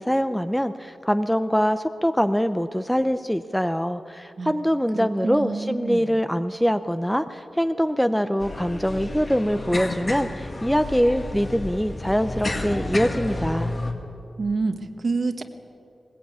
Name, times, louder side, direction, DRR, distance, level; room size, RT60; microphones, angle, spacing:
voice 1, 0.0-13.7, equal, ahead, 10 dB, 0.5 m, -23 dB
voice 2, 5.0-6.1 14.4-15.4, right 4 dB, 50° right, 8 dB, 1.4 m, -27 dB
sound 1, 8.4-13.9, left 2 dB, 30° left, 2.1 m, -31 dB
21.0 x 19.5 x 8.7 m, 2.7 s
wide cardioid pair, 155°, 0 cm